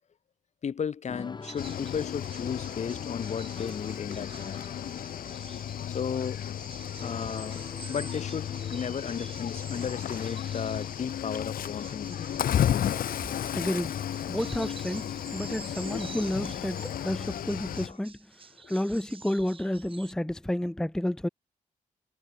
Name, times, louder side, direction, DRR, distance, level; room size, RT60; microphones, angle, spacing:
voice 1, 0.6-4.7 5.9-6.4 7.0-12.5 17.9-18.0 18.6-18.7, left 7 dB, 50° left, 2.5 m, -35 dB
sound 1, 1.1-12.5, left 4 dB, 30° left, 4.4 m, -48 dB
sound 2, 1.4-20.1, right 5 dB, 40° right, 3.8 m, -49 dB
Cricket / Waves surf, 1.6-17.9, left 10 dB, 80° left, 0.7 m, -33 dB
voice 2, 13.5-14.0 14.3-21.3, left 1 dB, 5° left, 0.6 m, -31 dB
wide cardioid pair, 155°, 15 cm